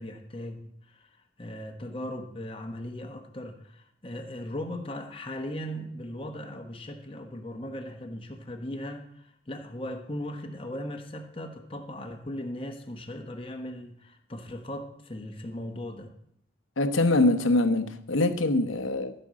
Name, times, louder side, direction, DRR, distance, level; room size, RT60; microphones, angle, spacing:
voice 1, 0.0-16.1, left 1 dB, 25° left, 1.2 m, -38 dB
voice 2, 16.8-19.1, left 2 dB, 80° left, 1.0 m, -24 dB
14.0 x 5.4 x 7.5 m
head